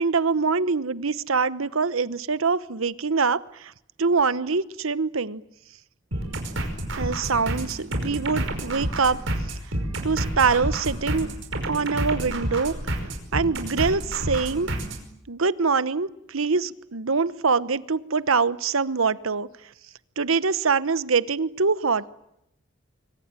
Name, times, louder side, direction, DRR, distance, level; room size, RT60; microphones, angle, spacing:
voice 1, 0.0-3.7 4.0-5.4 7.0-9.2 10.0-11.3 11.7-12.7 13.3-14.7 15.3-19.5 20.2-22.0, right 4 dB, 80° right, 16 dB, 1.0 m, -24 dB
sound 1, 6.1-15.0, right 1 dB, 60° right, 5.3 m, -29 dB
26.0 x 24.5 x 9.0 m, 0.80 s
head